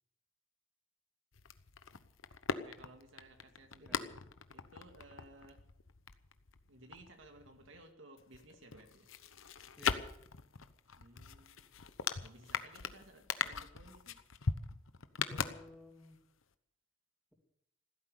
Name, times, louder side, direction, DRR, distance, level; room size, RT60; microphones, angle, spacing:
sound 1, 1.3-7.8 8.2-16.1 16.4-16.5, left 6 dB, 90° left, 1.0 m, -41 dB
voice 1, 2.5-4.1 4.5-5.6 6.7-9.1 10.9-11.7 12.2-14.2, right 2 dB, 75° right, 4 dB, 2.3 m, -58 dB
voice 2, 15.3-16.2, left 1 dB, ahead, 1 dB, 3.2 m, -55 dB
15.5 x 13.0 x 6.6 m, 0.75 s
head